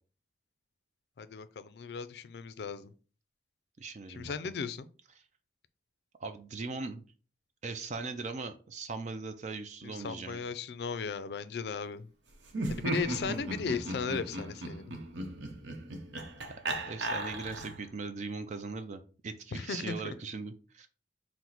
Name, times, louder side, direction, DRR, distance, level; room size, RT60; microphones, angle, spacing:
voice 1, 1.2-2.9 4.1-4.9 9.8-12.1 12.7-14.9 19.5-20.0, left 5 dB, 65° left, 13 dB, 0.4 m, -36 dB
voice 2, 3.8-4.3 6.2-7.0 7.6-10.4 16.9-20.9, right 4 dB, 40° right, 8 dB, 0.4 m, -39 dB
Laughter, 12.5-17.9, right 2 dB, 90° right, 0.8 m, -36 dB
4.4 x 2.1 x 3.9 m, 0.37 s
head